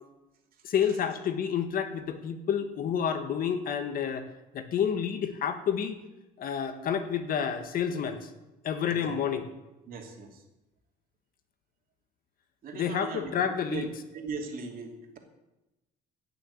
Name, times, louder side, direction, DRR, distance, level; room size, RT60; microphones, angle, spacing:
voice 1, 0.6-4.3 4.5-6.0 6.4-8.3 8.6-9.5 12.7-13.9, left 8 dB, 60° left, 9 dB, 1.5 m, -29 dB
voice 2, 8.9-9.2 9.9-10.4 12.6-13.8 14.1-15.2, right 4 dB, 60° right, 3 dB, 2.8 m, -39 dB
15.5 x 6.8 x 8.3 m, 0.99 s
cardioid pair, 110°, 17 cm